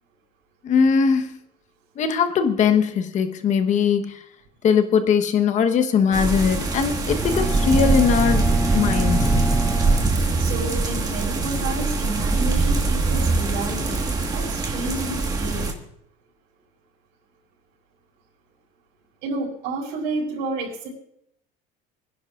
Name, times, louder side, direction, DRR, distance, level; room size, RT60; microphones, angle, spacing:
voice 1, 0.6-1.3 2.0-4.2 4.6-9.3, left 6 dB, 40° left, 7 dB, 1.2 m, -20 dB
sound 1, 6.1-15.7, right 3 dB, 20° right, 1.7 m, -22 dB
Bowed string instrument, 7.1-11.0, left 1 dB, 10° left, 0.8 m, -30 dB
voice 2, 10.4-14.0 14.3-15.8 19.2-20.9, right 2 dB, 75° right, -3 dB, 6.0 m, -30 dB
25.5 x 10.5 x 2.5 m, 0.74 s
cardioid pair, 130°, 18 cm